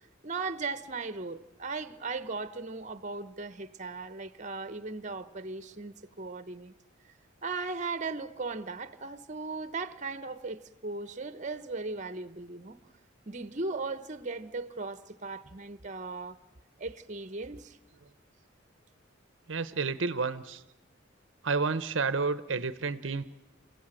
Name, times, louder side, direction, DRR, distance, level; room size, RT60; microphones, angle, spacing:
voice 1, 0.2-6.7 7.4-12.8 13.3-16.4 16.8-17.8, right 3 dB, 40° right, 1.0 m, -37 dB
voice 2, 19.5-20.6 21.4-23.2, right 4 dB, 70° right, 0.8 m, -30 dB
28.0 x 16.5 x 9.0 m
head